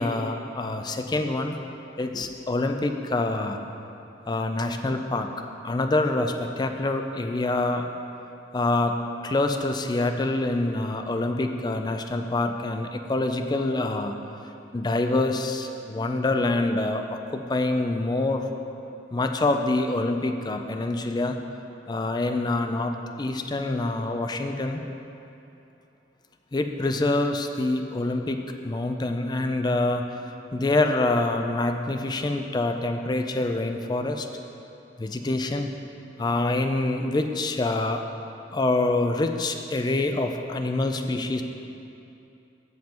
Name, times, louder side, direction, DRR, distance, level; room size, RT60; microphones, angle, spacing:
voice 1, 0.0-1.6 2.0-3.6 4.3-5.3 5.6-7.9 8.5-9.0 9.2-14.2 14.7-18.5 19.1-21.4 21.9-24.8 26.5-28.4 28.6-30.2 30.5-34.3 35.0-35.7 36.2-38.0 38.5-41.4, left 2 dB, 25° left, 5 dB, 0.4 m, -26 dB
15.0 x 5.4 x 3.0 m, 2.8 s
head